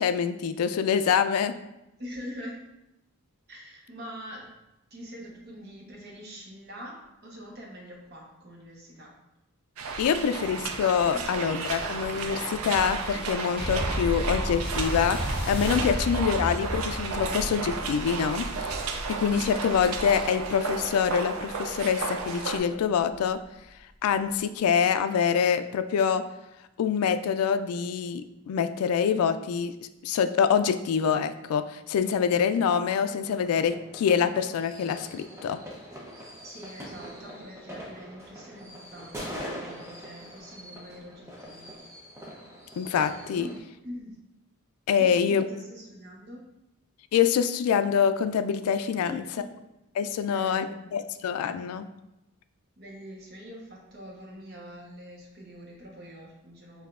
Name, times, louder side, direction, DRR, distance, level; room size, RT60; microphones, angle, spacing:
voice 1, 0.0-1.5 10.0-15.2 15.5-23.4 24.0-26.2 26.8-29.7 30.0-35.6 42.8-43.5 44.9-45.4 47.1-49.2 50.0-51.9, left 7 dB, 90° left, 14 dB, 0.3 m, -25 dB
voice 2, 2.0-2.6 3.5-4.5 4.9-9.1 11.1-11.4 36.4-41.8 43.3-44.2 45.0-46.4 49.0-49.6 50.3-50.8 52.8-56.9, equal, 45° right, -2 dB, 1.0 m, -44 dB
sound 1, 9.8-22.6, right 4 dB, 80° right, 0.5 m, -33 dB
sound 2, 13.6-22.3 23.1-23.2, equal, 10° left, 1.4 m, -34 dB
sound 3, 33.2-43.6, equal, 15° right, 0.7 m, -43 dB
6.7 x 2.7 x 2.4 m, 0.91 s
head